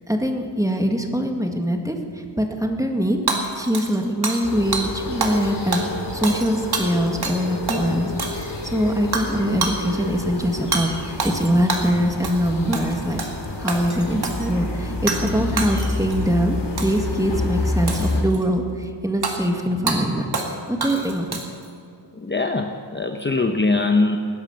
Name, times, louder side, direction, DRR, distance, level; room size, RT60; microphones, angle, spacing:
voice 1, 0.1-2.0 2.4-5.8 6.1-13.2 13.6-20.3 20.8-21.4, equal, 5° right, 3 dB, 1.7 m, -23 dB
Hammer / Shatter, 3.3-4.5 4.7-4.9 5.2-5.5 5.7-7.4 7.7-7.8 8.2-8.7 9.1-9.3 9.6-9.8 10.7-10.9 11.2-11.9 12.2-12.5 12.7-13.4 13.7-14.5 15.1-15.3 15.6-16.2 16.8-17.1 17.9-18.4 19.2-19.4 19.9-20.0 20.3-20.5 20.8-21.7, right 3 dB, 60° right, 2.2 m, -27 dB
sound 1, 4.4-18.2, left 2 dB, 70° left, 3.1 m, -29 dB
voice 2, 22.2-24.2, left 3 dB, 25° left, 5 dB, 0.9 m, -21 dB
19.5 x 10.5 x 7.0 m, 2.4 s
wide cardioid pair, 90°, 43 cm